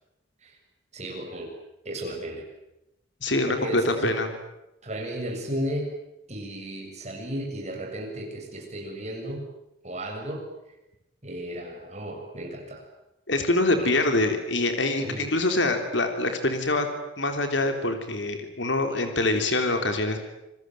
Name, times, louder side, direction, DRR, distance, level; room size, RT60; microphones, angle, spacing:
voice 1, 0.9-1.5 1.8-2.4 3.5-4.1 4.8-5.9 6.3-9.4 9.8-10.5 11.2-12.8 13.7-14.0 15.0-15.3, right 1 dB, 35° right, 1 dB, 7.2 m, -34 dB
voice 2, 3.2-4.3 13.3-16.9 17.2-20.2, left 2 dB, 65° left, 6 dB, 3.4 m, -25 dB
27.5 x 21.0 x 9.3 m, 0.91 s
head